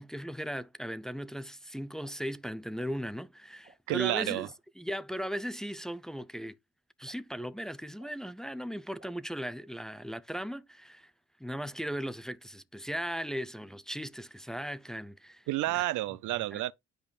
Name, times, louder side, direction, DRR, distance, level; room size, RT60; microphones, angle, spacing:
voice 1, 0.0-4.5 4.8-6.6 7.0-11.1 11.4-15.8 16.5-16.6, equal, ahead, 0.5 m, -38 dB
sound 1, 2.0-2.1 2.8-2.9 3.6-3.8 4.4-4.6 5.3-5.4 6.2-6.3 7.0-7.1 8.0-8.1 9.0-9.1, right 3 dB, 25° right, 1.9 m, -58 dB
voice 2, 3.9-4.5 15.5-16.7, right 17 dB, 80° right, 0.5 m, -30 dB
10.5 x 5.1 x 2.4 m
cardioid pair, 90°, 30 cm